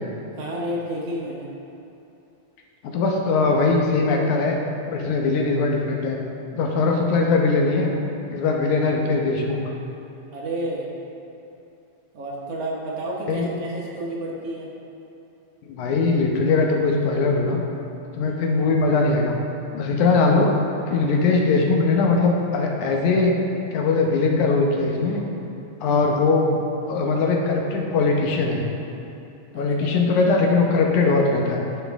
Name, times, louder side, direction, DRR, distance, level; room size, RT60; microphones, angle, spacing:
voice 1, 0.4-1.5 10.3-10.9 12.1-14.7 18.2-18.6 25.8-26.0 29.5-30.0, right 1 dB, 65° right, -3 dB, 1.9 m, -31 dB
voice 2, 2.9-4.6 4.9-6.2 6.5-7.9 8.3-9.6 13.3-13.5 15.7-17.6 18.2-19.3 19.7-20.5 20.9-23.4 23.7-25.2 25.8-26.5 26.9-28.6 29.5-31.6, left 3 dB, 85° left, 0 dB, 2.3 m, -20 dB
11.5 x 5.7 x 3.5 m, 2.8 s
omnidirectional pair, 3.4 m